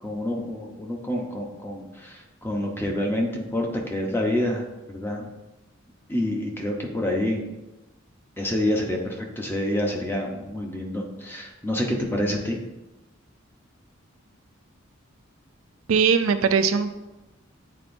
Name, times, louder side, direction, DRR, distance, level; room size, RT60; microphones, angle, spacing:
voice 1, 0.0-5.3 6.1-7.5 8.4-12.6, left 1 dB, 10° left, 0 dB, 0.8 m, -27 dB
voice 2, 15.9-16.9, right 6 dB, 90° right, 9 dB, 0.4 m, -20 dB
8.8 x 4.2 x 2.6 m, 1.0 s
head